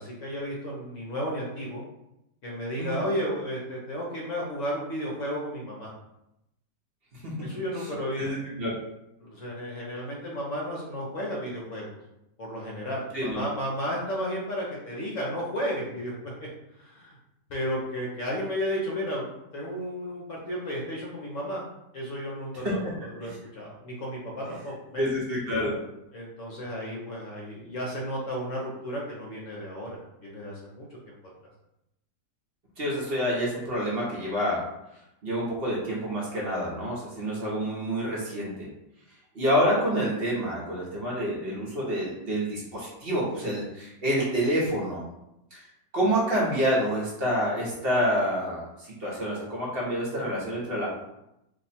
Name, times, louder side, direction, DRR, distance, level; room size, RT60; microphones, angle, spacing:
voice 1, 0.0-1.8 2.4-5.9 7.4-8.2 9.2-11.9 12.4-16.1 16.8-17.2 17.5-19.3 19.5-21.6 21.9-25.1 26.1-31.1, equal, 55° left, -3 dB, 1.0 m, -33 dB
voice 2, 8.2-8.7 13.1-13.4 22.6-22.7 23.2-23.3 25.0-25.7 32.8-34.6 35.2-38.7 39.3-45.0 45.5-45.6 45.9-50.9, equal, 45° right, -5 dB, 0.9 m, -28 dB
2.9 x 2.2 x 4.1 m, 0.86 s
omnidirectional pair, 1.8 m